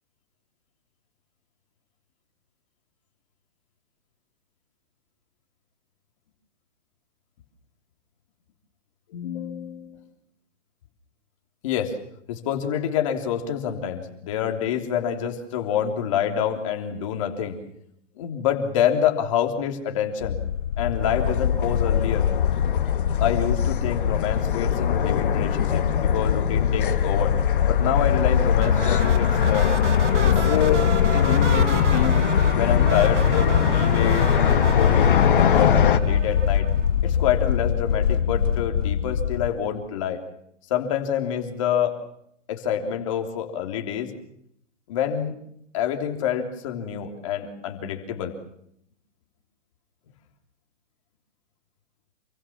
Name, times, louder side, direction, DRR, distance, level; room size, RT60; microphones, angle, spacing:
voice 1, 9.1-10.0 11.6-11.9 12.3-17.6 18.1-20.4 20.8-22.3 23.2-27.3 27.7-29.7 30.2-30.8 31.1-32.2 32.5-36.7 37.0-40.2 40.7-42.0 42.5-44.1 44.9-45.4 45.7-48.3, left 9 dB, 25° left, 3 dB, 3.4 m, -27 dB
sound 1, 20.2-39.5, left 8 dB, 85° left, 1.9 m, -24 dB
sound 2, 21.0-36.0, left 8 dB, 45° left, 1.8 m, -22 dB
sound 3, 28.6-37.0, right 7 dB, 70° right, 2.5 m, -33 dB
28.5 x 23.5 x 7.3 m, 0.71 s
hypercardioid pair, 180°, 37 cm